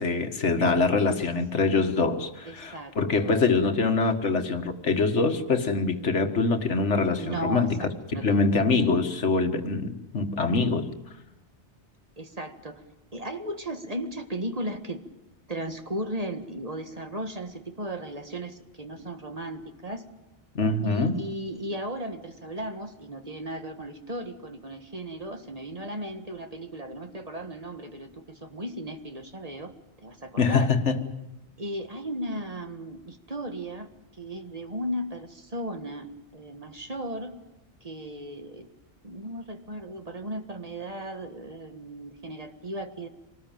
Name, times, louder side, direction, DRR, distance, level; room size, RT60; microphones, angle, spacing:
voice 1, 0.0-7.8 8.2-10.9 20.6-21.2 30.4-31.0, left 4 dB, 90° left, 7 dB, 1.9 m, -24 dB
voice 2, 2.4-3.0 3.2-3.3 7.2-8.5 12.2-12.8 13.1-15.0 15.5-20.0 20.8-29.7 30.0-30.7 31.6-36.1 36.3-37.3 37.8-38.7 39.0-43.1, right 1 dB, 35° right, 6 dB, 1.8 m, -36 dB
26.5 x 19.5 x 9.1 m, 0.98 s
omnidirectional pair, 1.2 m